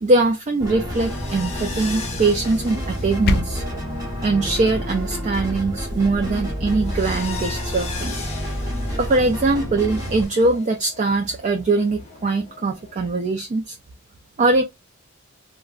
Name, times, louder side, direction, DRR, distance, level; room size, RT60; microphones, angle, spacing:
voice 1, 0.0-3.6 4.2-8.1 9.0-13.8 14.4-14.6, right 3 dB, 35° right, 0.4 m, -21 dB
sound 1, 0.6-10.3, equal, 20° right, 1.1 m, -29 dB
sound 2, 0.9-9.7 9.9-13.0, left 5 dB, 30° left, 0.9 m, -39 dB
sound 3, 2.8-3.8, left 2 dB, 50° left, 0.4 m, -25 dB
3.4 x 2.2 x 2.4 m
head